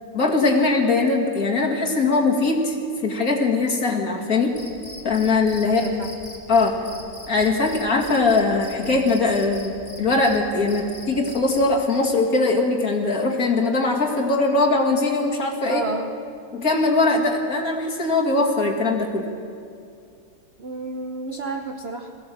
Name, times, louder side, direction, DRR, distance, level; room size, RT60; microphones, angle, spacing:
voice 1, 0.1-2.8 3.0-4.5 5.0-5.8 6.5-6.8 7.3-15.8 16.5-19.3, left 3 dB, 45° left, 0 dB, 2.6 m, -21 dB
Cricket, 4.5-11.7, left 1 dB, 20° left, 2.9 m, -42 dB
voice 2, 5.7-6.1 15.6-16.1 20.6-22.1, right 3 dB, 45° right, 4 dB, 0.8 m, -30 dB
22.5 x 15.5 x 7.6 m, 2.4 s
omnidirectional pair, 2.1 m